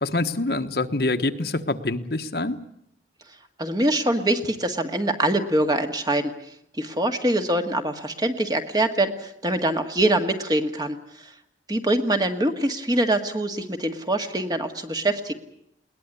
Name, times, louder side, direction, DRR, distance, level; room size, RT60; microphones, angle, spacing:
voice 1, 0.0-2.6, left 2 dB, 60° left, 7 dB, 1.4 m, -25 dB
voice 2, 3.6-6.3 6.8-11.3 11.7-15.3, right 1 dB, 25° right, 6 dB, 1.8 m, -24 dB
21.0 x 19.5 x 9.9 m, 0.74 s
head